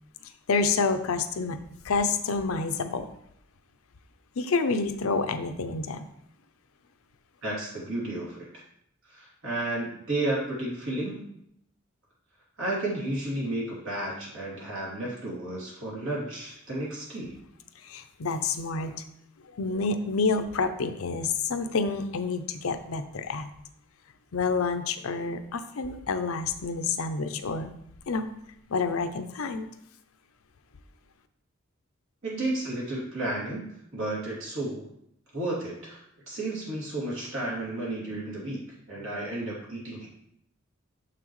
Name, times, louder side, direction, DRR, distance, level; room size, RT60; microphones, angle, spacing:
voice 1, 0.5-1.6 1.8-3.1 4.4-6.0 17.8-19.0 19.5-23.5 24.3-27.7 28.1-28.3 28.7-29.7, left 4 dB, 70° left, 9 dB, 0.6 m, -28 dB
voice 2, 7.4-8.5 9.1-11.2 12.6-17.3 32.2-34.9 35.3-38.6 38.9-40.1, right 1 dB, 65° right, -5 dB, 2.8 m, -32 dB
6.8 x 5.9 x 3.1 m, 0.75 s
head